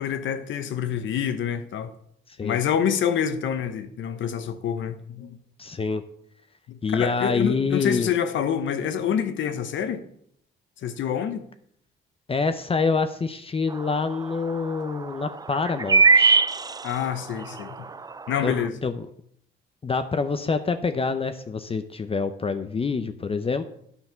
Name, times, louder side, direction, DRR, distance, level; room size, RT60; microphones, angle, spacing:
voice 1, 0.0-1.9 2.4-5.4 6.7-10.1 10.8-11.4 16.8-17.9 18.3-18.7, left 8 dB, 75° left, 10 dB, 0.9 m, -27 dB
voice 2, 5.6-6.0 6.8-8.1 12.3-16.4 18.4-18.5 18.8-19.1 19.8-23.6, left 4 dB, 30° left, 9 dB, 0.6 m, -26 dB
sound 1, 13.7-13.8 14.1-14.2 15.6-17.2 17.7-17.8 18.1-18.5, right 4 dB, 20° right, 0.4 m, -18 dB
9.7 x 5.7 x 5.7 m, 0.69 s
cardioid pair, 90°, 20 cm